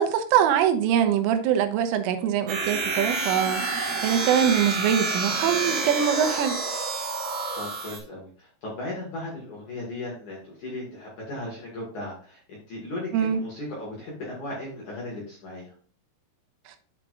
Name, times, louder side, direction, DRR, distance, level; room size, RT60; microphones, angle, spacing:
voice 1, 0.0-3.6 4.0-6.6 13.1-13.4, right 9 dB, 85° right, 3.2 m, -23 dB
sound 1, 2.5-8.0, right 3 dB, 60° right, 4.1 m, -28 dB
voice 2, 7.6-15.7, left 1 dB, 60° left, 2.1 m, -36 dB
11.5 x 4.9 x 2.4 m
omnidirectional pair, 5.8 m